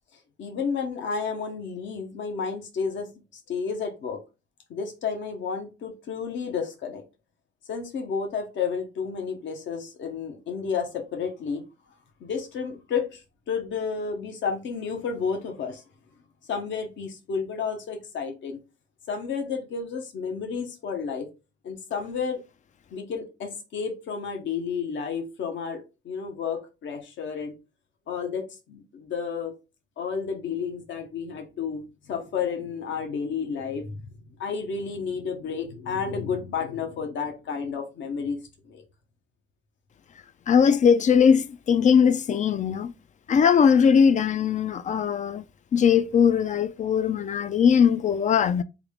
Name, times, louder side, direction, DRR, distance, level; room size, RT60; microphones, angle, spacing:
voice 1, 0.4-4.2 4.7-7.0 7.7-11.6 12.2-15.8 16.5-18.6 19.1-21.3 21.6-22.4 22.9-27.6 28.1-29.5 30.0-31.8 32.1-34.0 34.4-38.4 38.6-38.8, left 6 dB, 70° left, 1.0 m, -31 dB
voice 2, 40.5-42.9 43.3-45.4 45.7-48.6, left 7 dB, 40° left, 0.4 m, -20 dB
3.6 x 2.3 x 3.4 m
cardioid pair, 90°, 20 cm